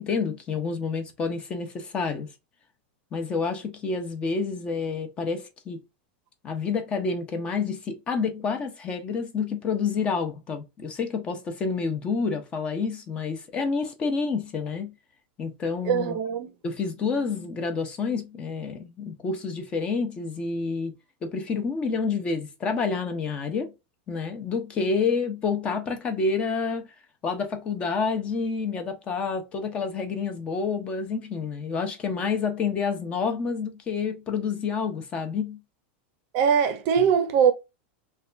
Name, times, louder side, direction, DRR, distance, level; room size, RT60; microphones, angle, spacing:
voice 1, 0.0-2.3 3.1-5.8 6.4-14.9 15.4-16.2 16.6-20.9 21.2-23.7 24.1-26.9 27.2-35.6, left 5 dB, 20° left, 0.5 m, -28 dB
voice 2, 15.8-16.5 36.3-37.5, right 7 dB, 40° right, 0.6 m, -21 dB
3.2 x 2.2 x 2.4 m
supercardioid pair, 170°, 6 cm